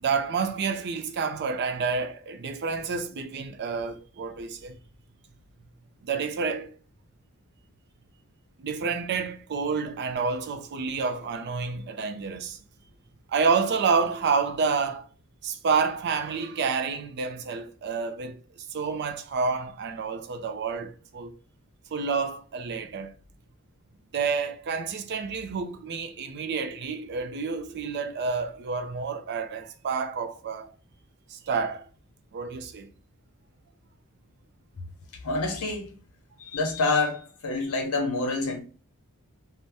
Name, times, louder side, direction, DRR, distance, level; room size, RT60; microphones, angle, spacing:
voice 1, 0.0-4.8 6.0-6.7 8.6-12.6 13.3-15.1 15.4-21.3 21.9-23.1 24.1-30.7 31.3-31.9 32.3-32.9, right 5 dB, 50° right, 0.4 m, -29 dB
voice 2, 35.2-36.0 36.4-38.6, left 3 dB, 75° left, 0.7 m, -27 dB
2.7 x 2.1 x 3.2 m
head